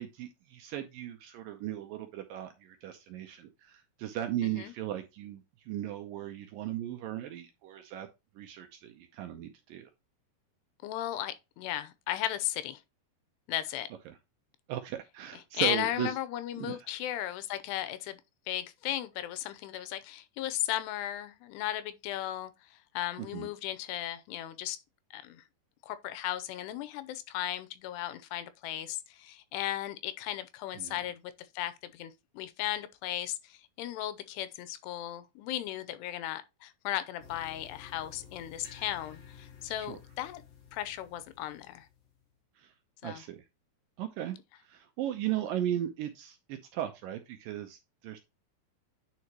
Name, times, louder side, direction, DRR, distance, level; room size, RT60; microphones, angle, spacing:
voice 1, 0.0-8.1 8.4-9.9 14.1-14.2 14.7-16.1 16.6-16.8 23.2-23.5 30.8-31.0 39.8-40.0 42.6-42.7 43.0-43.4 44.0-44.4 44.6-48.2, right 12 dB, 80° right, 2.1 m, -37 dB
voice 2, 4.4-4.7 10.8-12.8 13.5-13.9 15.5-18.2 18.5-24.8 25.1-25.4 25.8-40.4 40.7-41.9 43.0-43.2, left 13 dB, 90° left, 2.9 m, -36 dB
sound 1, 37.2-42.3, left 7 dB, 55° left, 2.0 m, -53 dB
9.6 x 4.7 x 2.9 m
omnidirectional pair, 4.7 m